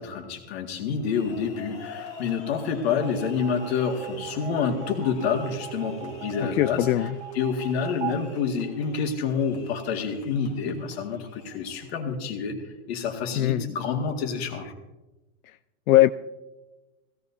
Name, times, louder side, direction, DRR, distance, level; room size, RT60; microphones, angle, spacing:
voice 1, 0.0-12.6 12.9-14.7, left 6 dB, 50° left, 3 dB, 2.0 m, -28 dB
sound 1, 0.9-12.0, left 3 dB, 15° left, 1.2 m, -46 dB
sound 2, 2.9-9.4, right 12 dB, 45° right, 0.7 m, -39 dB
voice 2, 6.6-7.1 13.4-13.7 15.9-16.1, left 15 dB, 85° left, 13 dB, 0.6 m, -19 dB
17.5 x 16.0 x 2.7 m, 1.1 s
supercardioid pair, 170°, 41 cm